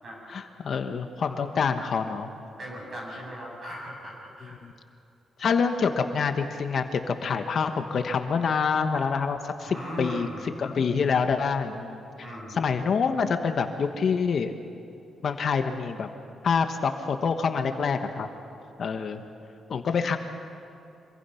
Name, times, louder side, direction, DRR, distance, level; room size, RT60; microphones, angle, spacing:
voice 1, 0.3-2.3 4.4-4.7 5.4-10.3 10.6-12.1 12.5-14.5 15.2-16.1 16.4-18.3 18.8-19.2 19.7-20.2, left 5 dB, 50° left, 7 dB, 1.2 m, -26 dB
voice 2, 2.6-4.6 9.7-10.4 12.2-12.7, equal, 40° right, -2 dB, 7.7 m, -38 dB
25.5 x 24.0 x 5.8 m, 2.6 s
cardioid pair, 135°, 0 cm